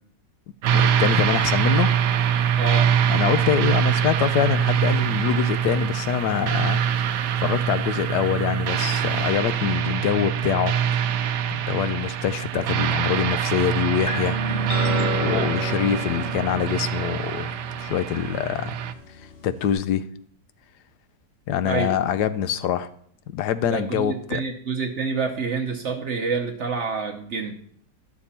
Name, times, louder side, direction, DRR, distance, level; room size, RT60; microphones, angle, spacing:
sound 1, 0.6-18.9, right 8 dB, 70° right, 1.2 m, -24 dB
voice 1, 0.7-1.9 3.1-10.8 11.7-14.4 15.2-17.5 17.8-18.8 19.4-20.1 21.5-22.9 23.3-24.4, left 9 dB, 70° left, 13 dB, 1.1 m, -25 dB
voice 2, 2.6-2.9 15.3-15.5 21.6-22.0 23.6-27.5, right 5 dB, 50° right, 2 dB, 0.9 m, -28 dB
sound 2, 14.1-19.7, left 2 dB, 50° left, 0.7 m, -32 dB
12.5 x 7.0 x 4.2 m, 0.63 s
omnidirectional pair, 2.0 m